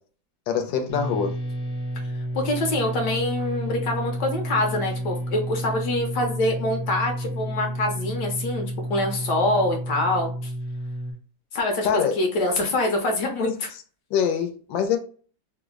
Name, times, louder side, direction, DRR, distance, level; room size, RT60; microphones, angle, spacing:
voice 1, 0.5-1.4 11.8-12.2 14.1-15.0, left 7 dB, 85° left, 1.4 m, -24 dB
sound 1, 0.9-11.1, right 1 dB, 50° left, 0.9 m, -31 dB
voice 2, 2.3-10.5 11.5-13.7, left 2 dB, 70° left, 1.2 m, -25 dB
3.2 x 2.0 x 3.5 m
omnidirectional pair, 2.1 m